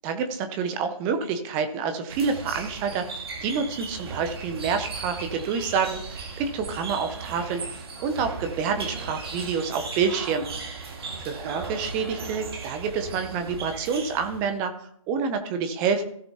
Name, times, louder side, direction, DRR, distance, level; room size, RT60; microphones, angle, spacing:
voice 1, 0.0-3.0 3.4-10.5 11.2-16.0, right 6 dB, 10° right, 7 dB, 0.5 m, -28 dB
sound 1, 2.1-14.6, right 4 dB, 45° right, 1.8 m, -37 dB
16.5 x 6.8 x 2.8 m, 0.69 s
figure-of-eight pair, 150°, 18 cm